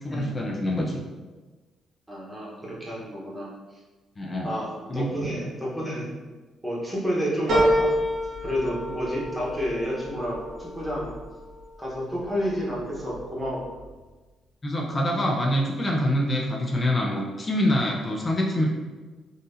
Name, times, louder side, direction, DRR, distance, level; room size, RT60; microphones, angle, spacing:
voice 1, 0.0-1.0 4.2-4.5 4.9-5.1 14.6-18.7, left 1 dB, 30° left, -1 dB, 0.5 m, -25 dB
voice 2, 2.1-3.5 4.4-6.1 6.6-7.9 8.4-11.1 11.8-13.7, equal, 10° right, -6 dB, 1.1 m, -30 dB
sound 1, 7.5-12.2 12.7-13.4 13.8-13.9, equal, 70° right, 1.1 m, -28 dB
3.8 x 2.6 x 2.7 m, 1.3 s
cardioid pair, 90°, 0 cm